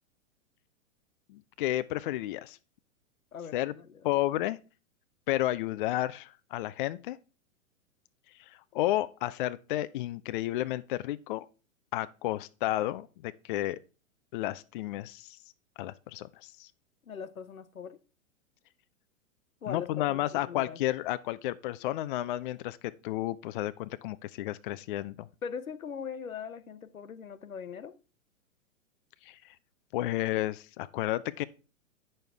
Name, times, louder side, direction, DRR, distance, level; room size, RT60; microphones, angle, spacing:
voice 1, 1.3-2.6 3.5-3.7 4.0-4.6 5.3-7.2 8.5-11.5 11.9-13.8 14.3-15.4 15.8-16.7 19.7-25.3 29.2-29.5 29.9-31.4, left 15 dB, 40° left, 0.4 m, -32 dB
voice 2, 3.3-4.1 17.1-18.0 19.6-20.8 25.4-27.9, left 7 dB, 85° left, 0.8 m, -41 dB
8.9 x 6.4 x 3.4 m
figure-of-eight pair, 110°, 40 cm